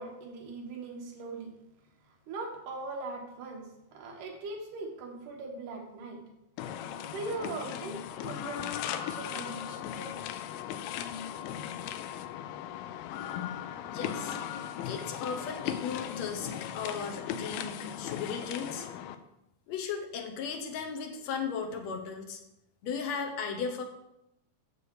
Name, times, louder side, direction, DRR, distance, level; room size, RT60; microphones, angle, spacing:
voice 1, 0.0-1.5 2.3-6.2 7.0-10.1, right 3 dB, 70° right, 0 dB, 3.1 m, -40 dB
sound 1, 6.6-19.2, left 9 dB, 85° left, 2.3 m, -38 dB
voice 2, 13.9-14.4 14.9-18.9 19.7-22.4 22.8-23.8, left 6 dB, 70° left, 4 dB, 1.8 m, -36 dB
8.0 x 6.9 x 4.8 m, 0.86 s
omnidirectional pair, 4.0 m